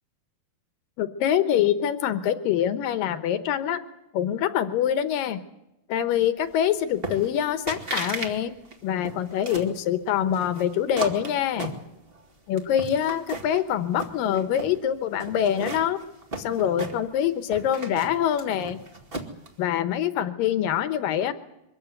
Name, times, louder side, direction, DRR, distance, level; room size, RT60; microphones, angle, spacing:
voice 1, 1.0-3.8 4.1-5.4 5.9-8.5 8.8-11.7 12.5-16.0 16.4-18.8 19.6-21.3, left 10 dB, 70° left, 11 dB, 2.6 m, -25 dB
sound 1, 7.0-7.4 7.7-8.3 8.6-9.7 10.3-12.2 12.6-13.6 13.9-14.7 15.2-17.2 17.5-19.5, right 2 dB, 25° right, 1.2 m, -34 dB
23.5 x 15.0 x 9.4 m, 0.90 s
omnidirectional pair, 4.6 m